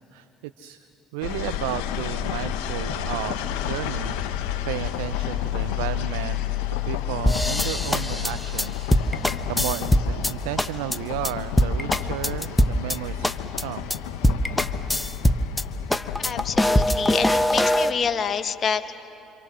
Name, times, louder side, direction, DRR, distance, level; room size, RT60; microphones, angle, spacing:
voice 1, 1.1-6.4 6.9-9.2 9.5-13.9, right 14 dB, 80° right, 13 dB, 0.5 m, -33 dB
sound 1, 1.2-16.9, left 11 dB, 75° left, 1.2 m, -31 dB
sound 2, 7.3-10.3 10.6-11.0 11.2-11.3 11.6-13.0 13.2-13.6 13.9-14.0 14.2-15.6 15.9-17.9, equal, 10° left, 1.1 m, -22 dB
voice 2, 16.2-18.9, left 6 dB, 45° left, 8 dB, 1.4 m, -27 dB
26.5 x 26.5 x 6.3 m, 2.8 s
hypercardioid pair, 65°, 0 cm